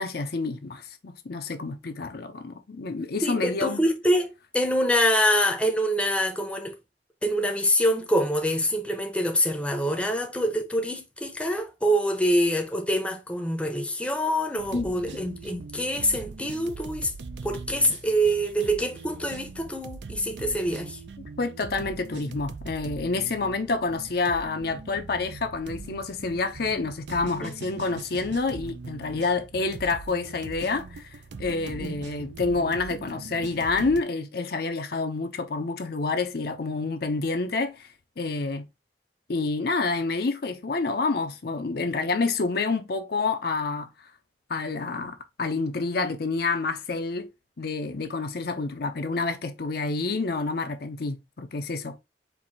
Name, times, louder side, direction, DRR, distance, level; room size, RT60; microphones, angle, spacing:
voice 1, 0.0-3.8 14.7-14.9 21.4-37.9 38.2-38.6 39.3-43.9 44.5-47.3 47.6-52.0, left 3 dB, 60° left, 0.6 m, -28 dB
voice 2, 3.2-6.7 7.2-17.1 17.4-21.0 27.4-27.5 31.8-32.0, equal, 5° left, 0.7 m, -25 dB
sound 1, 14.6-34.0, right 4 dB, 75° right, 0.5 m, -41 dB
4.6 x 2.6 x 3.9 m
head